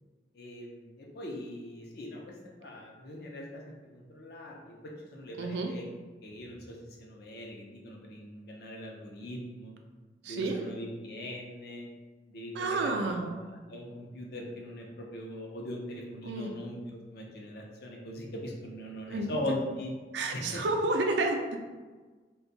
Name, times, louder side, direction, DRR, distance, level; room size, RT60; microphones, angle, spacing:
voice 1, 0.3-5.9 6.2-9.7 10.3-11.9 12.3-16.8 17.1-19.9 20.3-20.6, left 1 dB, 60° left, -1 dB, 0.6 m, -41 dB
voice 2, 5.4-5.7 10.2-10.5 12.6-13.2 16.3-16.5 19.1-19.4 20.1-21.6, right 2 dB, 75° right, 3 dB, 0.4 m, -30 dB
2.6 x 2.3 x 3.9 m, 1.3 s
head